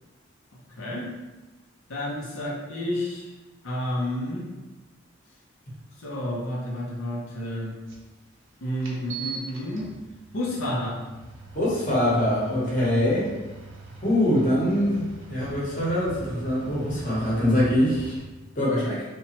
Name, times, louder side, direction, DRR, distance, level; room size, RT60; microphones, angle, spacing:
voice 1, 0.8-1.1 1.9-3.3 3.6-4.5 6.0-7.7 8.6-9.9 10.3-11.0, left 1 dB, 90° left, -4 dB, 0.6 m, -30 dB
sound 1, 7.9-8.0 8.8-18.2, right 3 dB, 75° right, 0.6 m, -42 dB
voice 2, 11.5-13.3 14.0-18.2 18.6-19.0, left 1 dB, 40° left, -7 dB, 0.9 m, -23 dB
2.9 x 2.1 x 2.8 m, 1.1 s
head